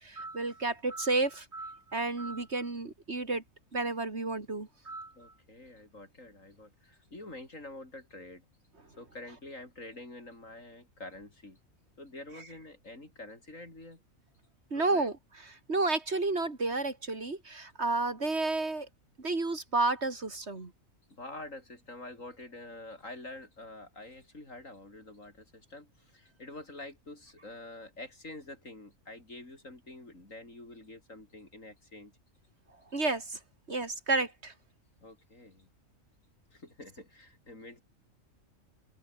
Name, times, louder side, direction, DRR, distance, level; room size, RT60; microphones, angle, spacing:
voice 1, 0.0-3.4 3.7-5.3 14.7-15.1 15.7-18.9 19.2-20.7 32.9-33.4 33.7-34.5, right 3 dB, 55° right, 3.2 m, -31 dB
voice 2, 5.2-8.5 9.0-11.6 12.0-14.0 14.7-15.1 21.1-32.1 35.0-35.7 36.5-37.8, left 2 dB, 70° left, 6.4 m, -47 dB
omnidirectional pair, 1.4 m